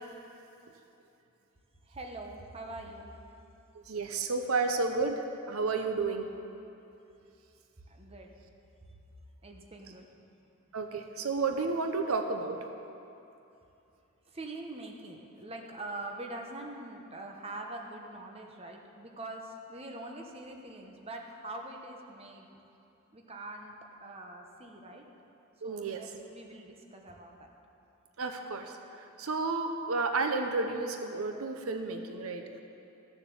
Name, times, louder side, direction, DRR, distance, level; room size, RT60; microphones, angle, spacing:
voice 1, 1.8-3.1 7.9-8.3 8.9-9.0 9.4-10.1 14.2-22.6 23.1-23.7 24.0-25.0 25.6-27.5, right 2 dB, 30° right, 2 dB, 1.0 m, -44 dB
voice 2, 3.9-6.3 10.7-12.6 25.6-26.0 28.2-32.6, right 3 dB, 85° right, 6 dB, 0.8 m, -32 dB
14.0 x 7.1 x 7.0 m, 2.8 s
head